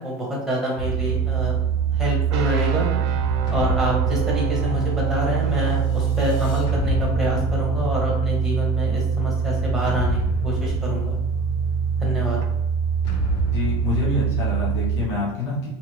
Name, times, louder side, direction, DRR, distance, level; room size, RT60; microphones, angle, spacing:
voice 1, 0.0-1.6 1.9-2.9 3.5-11.2 12.0-12.4, equal, 5° right, -3 dB, 0.7 m, -27 dB
sound 1, 0.8-15.0, right 6 dB, 30° left, 0.3 m, -23 dB
sound 2, 2.3-12.5, left 1 dB, 75° right, 0.4 m, -33 dB
voice 2, 13.5-15.7, left 3 dB, 85° left, -5 dB, 1.0 m, -26 dB
2.9 x 2.5 x 3.0 m, 0.81 s
supercardioid pair, 170°, 14 cm